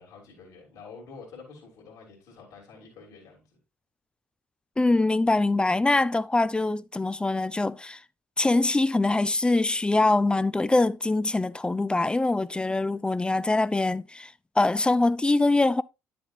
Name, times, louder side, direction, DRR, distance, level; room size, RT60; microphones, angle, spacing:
voice 1, 0.0-3.4, left 4 dB, 65° left, 3.2 m, -47 dB
voice 2, 4.8-8.0 8.4-15.8, left 2 dB, 15° left, 0.4 m, -23 dB
10.0 x 6.8 x 2.6 m
hypercardioid pair, 55°, 7 cm